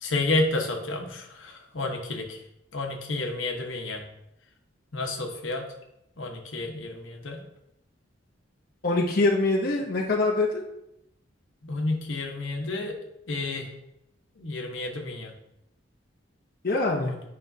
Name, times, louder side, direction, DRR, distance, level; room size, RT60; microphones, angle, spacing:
voice 1, 0.0-2.4 2.7-4.0 4.9-5.6 6.2-7.4 11.7-12.9 13.3-13.7 14.4-15.3 17.0-17.1, left 2 dB, 85° left, 2 dB, 1.1 m, -30 dB
voice 2, 8.8-10.6 16.6-17.1, left 2 dB, 50° left, -1 dB, 0.8 m, -24 dB
10.0 x 5.2 x 2.8 m, 0.83 s
head